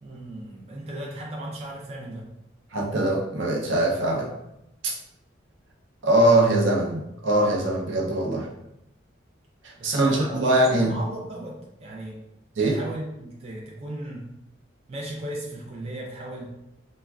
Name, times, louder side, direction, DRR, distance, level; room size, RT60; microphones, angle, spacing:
voice 1, 0.0-2.3 9.8-12.2 12.6-14.3 14.9-16.6, right 1 dB, 30° right, -3 dB, 0.4 m, -36 dB
voice 2, 2.7-4.3 4.8-4.9 6.0-8.5 9.6-10.9 12.6-12.8, right 1 dB, 80° right, -1 dB, 0.6 m, -22 dB
3.3 x 2.1 x 2.3 m, 0.84 s
head